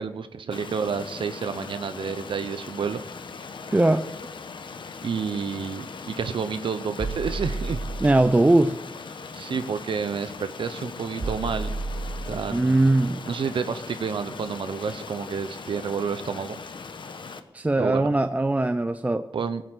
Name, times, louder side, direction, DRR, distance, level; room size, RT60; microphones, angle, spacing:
voice 1, 0.0-3.0 5.0-7.8 9.3-11.7 12.3-12.9 13.3-16.6 17.8-18.1 19.3-19.6, right 6 dB, 90° right, 0.8 m, -30 dB
Stream, 0.5-17.4, left 5 dB, 70° left, 1.1 m, -40 dB
voice 2, 3.7-4.1 8.0-8.8 12.5-13.2 17.5-19.3, right 2 dB, 15° right, 0.5 m, -20 dB
sound 1, 7.0-8.3 10.1-10.3 11.2-12.5 14.3-14.5 15.0-15.1, right 3 dB, 75° right, 2.1 m, -32 dB
19.5 x 8.0 x 7.9 m
wide cardioid pair, 130°, 8 cm